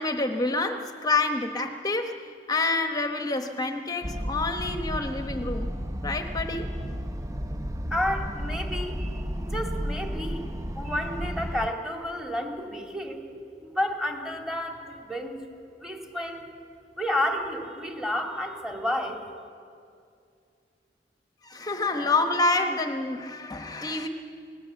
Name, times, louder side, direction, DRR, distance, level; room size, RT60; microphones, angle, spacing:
voice 1, 0.0-2.1 2.5-5.7 6.0-6.7 21.4-24.1, left 3 dB, 20° left, 6 dB, 1.1 m, -27 dB
sound 1, 4.0-11.7, equal, 20° right, 0.7 m, -33 dB
voice 2, 7.9-10.5 10.7-13.2 13.6-15.4 15.8-16.4 17.0-19.2, left 1 dB, 5° right, 2 dB, 2.4 m, -31 dB
26.5 x 18.5 x 7.6 m, 2.4 s
head